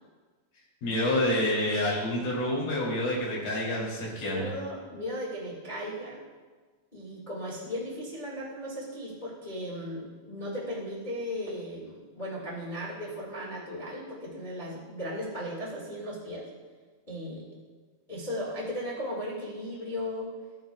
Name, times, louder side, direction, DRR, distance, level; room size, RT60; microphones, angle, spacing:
voice 1, 0.8-4.5, left 1 dB, 60° left, -4 dB, 4.6 m, -28 dB
voice 2, 4.1-6.2 6.9-16.5 17.1-17.4 18.1-20.3, equal, 75° left, -6 dB, 0.4 m, -36 dB
14.0 x 9.7 x 2.3 m, 1.4 s
omnidirectional pair, 4.9 m